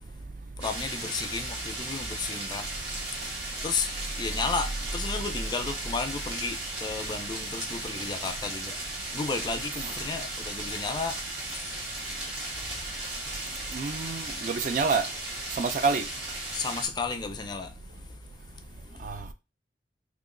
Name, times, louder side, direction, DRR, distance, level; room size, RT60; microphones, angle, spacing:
voice 1, 0.6-2.7 3.6-8.8 9.1-12.3 16.5-19.1, left 4 dB, 25° left, 0.4 m, -34 dB
sound 1, 0.6-16.9, right 2 dB, 75° right, 1.3 m, -36 dB
voice 2, 13.7-15.0 15.6-16.1 19.0-19.3, right 4 dB, 45° right, 0.3 m, -27 dB
2.9 x 2.3 x 3.7 m
head